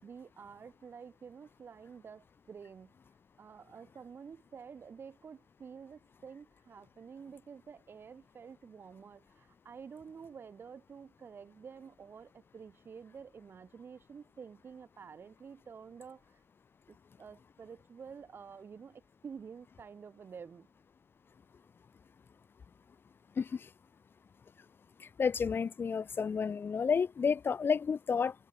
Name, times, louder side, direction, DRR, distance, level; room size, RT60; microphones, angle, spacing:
voice 1, 0.0-3.0 3.4-16.4 16.9-20.7, right 6 dB, 85° right, 2.8 m, -50 dB
voice 2, 23.4-23.7 25.0-28.3, left 6 dB, 75° left, 1.0 m, -31 dB
cardioid pair, 70°, 4 cm